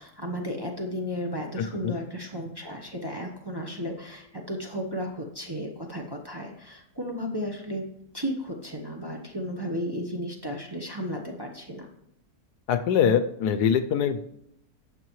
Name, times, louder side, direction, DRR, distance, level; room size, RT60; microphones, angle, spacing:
voice 1, 0.0-7.8 8.1-11.9, equal, 20° right, 0 dB, 0.8 m, -34 dB
voice 2, 1.6-2.0 12.7-14.3, left 7 dB, 85° left, 10 dB, 1.2 m, -24 dB
12.0 x 7.4 x 3.1 m, 0.78 s
omnidirectional pair, 1.7 m